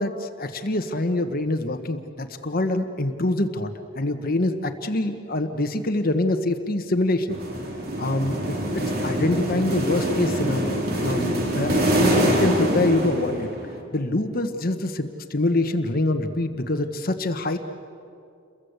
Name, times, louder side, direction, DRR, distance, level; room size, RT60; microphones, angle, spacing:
voice 1, 0.0-7.4 8.0-8.4 9.0-13.5 13.9-17.6, left 2 dB, 45° left, 7 dB, 1.3 m, -25 dB
sound 1, 7.3-13.8, equal, 45° right, 3.3 m, -24 dB
29.5 x 22.5 x 8.2 m, 2.4 s
head